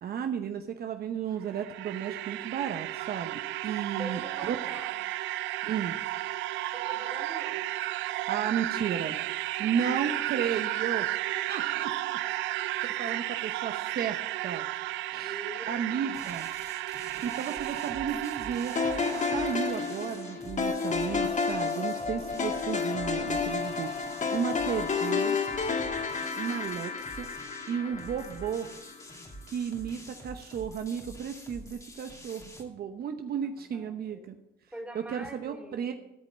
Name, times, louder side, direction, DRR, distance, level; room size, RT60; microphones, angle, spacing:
voice 1, 0.0-4.6 5.6-6.0 8.3-9.2 9.6-11.1 11.5-11.9 13.0-14.7 15.1-16.5 17.2-18.7 19.2-25.4 26.3-27.3 27.7-28.7 29.5-34.4 34.9-35.9, right 8 dB, 55° right, 7 dB, 0.9 m, -33 dB
sound 1, 1.3-20.0, right 16 dB, 80° right, 0.5 m, -33 dB
voice 2, 3.9-5.0 6.7-7.6 9.6-10.3 11.5-12.4 15.2-16.5 17.1-17.5 33.5-34.3 34.7-35.9, right 1 dB, 5° right, 1 dB, 3.1 m, -45 dB
sound 2, 16.1-32.6, left 1 dB, 15° left, 2.4 m, -48 dB
sound 3, 18.8-29.0, left 5 dB, 40° left, 1.6 m, -31 dB
14.0 x 5.3 x 7.3 m, 0.92 s
supercardioid pair, 75°, 19 cm